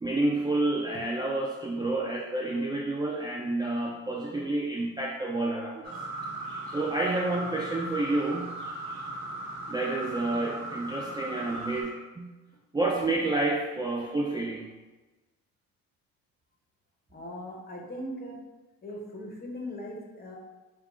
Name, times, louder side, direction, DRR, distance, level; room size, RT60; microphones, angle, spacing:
voice 1, 0.0-6.0 6.7-8.6 9.7-12.3 12.7-14.7, right 2 dB, 10° right, -2 dB, 0.4 m, -29 dB
sound 1, 5.8-11.8, right 2 dB, 35° right, 1.2 m, -37 dB
voice 2, 17.1-18.4 18.8-20.4, equal, 25° left, -1 dB, 1.1 m, -39 dB
4.5 x 2.3 x 3.7 m, 1.2 s
supercardioid pair, 85°, 35 cm